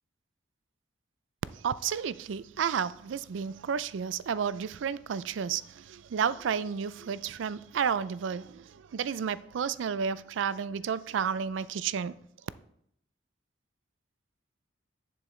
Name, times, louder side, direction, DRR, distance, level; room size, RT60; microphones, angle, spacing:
voice 1, 1.5-12.1, right 7 dB, 75° right, 0.4 m, -31 dB
10.5 x 6.8 x 3.2 m
head